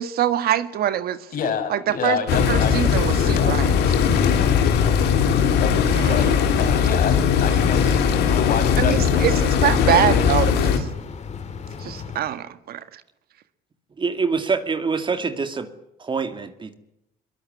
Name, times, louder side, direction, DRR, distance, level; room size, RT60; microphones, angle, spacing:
voice 1, 0.0-1.3 1.7-2.2 2.5-3.7 5.9-6.2 8.8-10.9 11.8-13.0, right 11 dB, 65° right, 11 dB, 1.7 m, -24 dB
voice 2, 1.3-2.8 3.3-4.8 5.6-5.8 6.1-6.3 6.6-7.9 8.2-9.3 9.6-10.3, left 6 dB, 60° left, 6 dB, 6.0 m, -28 dB
sound 1, 2.3-10.8, left 7 dB, 80° left, 3.4 m, -19 dB
sound 2, 3.2-12.2, left 5 dB, 40° left, 3.1 m, -32 dB
voice 3, 14.0-15.7 16.0-16.7, right 5 dB, 30° right, 8 dB, 2.3 m, -25 dB
22.5 x 21.0 x 9.8 m, 0.82 s
cardioid pair, 110°, 17 cm